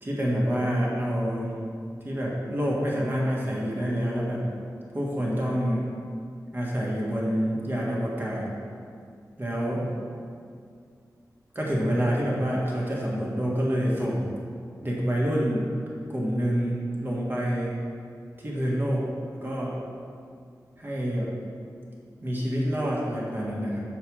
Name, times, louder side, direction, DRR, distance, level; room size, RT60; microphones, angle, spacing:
voice 1, 0.0-1.5 2.0-4.5 4.9-5.8 6.5-8.5 9.4-9.9 11.5-14.3 14.8-15.7 16.1-17.7 18.4-19.1 19.3-19.8 20.8-21.3 22.2-23.8, equal, 30° right, -4 dB, 1.5 m, -27 dB
6.3 x 4.6 x 6.1 m, 2.3 s
wide cardioid pair, 130°, 7 cm